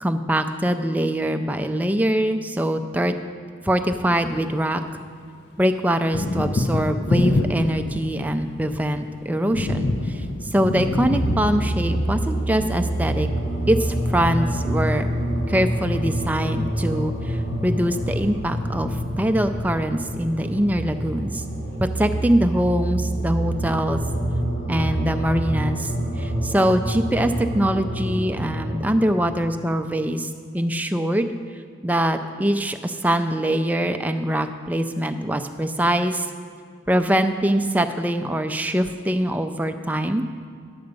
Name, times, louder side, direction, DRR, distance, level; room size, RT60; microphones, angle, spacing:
voice 1, 0.0-3.1 3.6-4.8 5.6-13.3 13.7-15.1 15.5-21.4 21.8-24.0 24.7-25.9 26.2-31.3 31.8-36.3 36.9-40.3, right 1 dB, 10° right, 7 dB, 0.4 m, -23 dB
Thunder, 3.9-5.1 5.4-20.6, left 2 dB, 60° left, 0.6 m, -29 dB
sound 1, 11.1-28.9, right 1 dB, 75° left, 2.6 m, -27 dB
10.5 x 7.9 x 5.2 m, 2.3 s
head